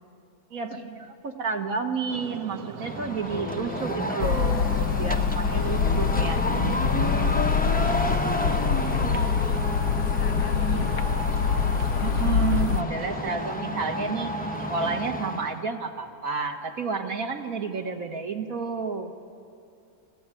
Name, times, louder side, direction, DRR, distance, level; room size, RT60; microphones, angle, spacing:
voice 1, 0.5-7.4 12.0-14.4 14.7-19.1, right 5 dB, 55° right, 4 dB, 1.8 m, -31 dB
sound 1, 2.1-15.0, right 8 dB, 70° right, 1.2 m, -41 dB
sound 2, 2.8-15.6, left 1 dB, 10° left, 0.6 m, -30 dB
voice 2, 3.3-4.1 7.4-8.0 9.9-11.1, left 5 dB, 50° left, 5 dB, 1.0 m, -40 dB
sound 3, 4.2-12.8, left 7 dB, 75° left, 1.2 m, -25 dB
27.5 x 14.5 x 9.1 m, 2.5 s
omnidirectional pair, 1.8 m